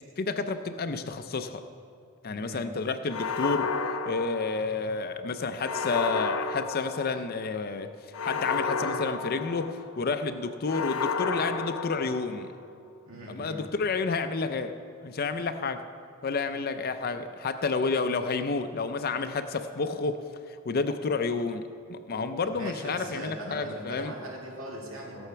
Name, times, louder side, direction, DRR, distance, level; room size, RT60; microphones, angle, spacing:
voice 1, 0.2-1.6 2.2-3.7 4.1-7.9 8.2-12.5 13.3-14.7 15.0-15.8 16.2-20.2 20.6-24.1, left 4 dB, 45° left, 8 dB, 0.5 m, -30 dB
sound 1, 3.1-5.0 5.6-7.4 8.1-10.0 10.7-12.5, left 5 dB, 90° left, 0.6 m, -31 dB
voice 2, 13.1-13.6 22.4-25.3, right 1 dB, 75° right, -2 dB, 2.4 m, -40 dB
16.0 x 7.1 x 5.8 m, 2.4 s
head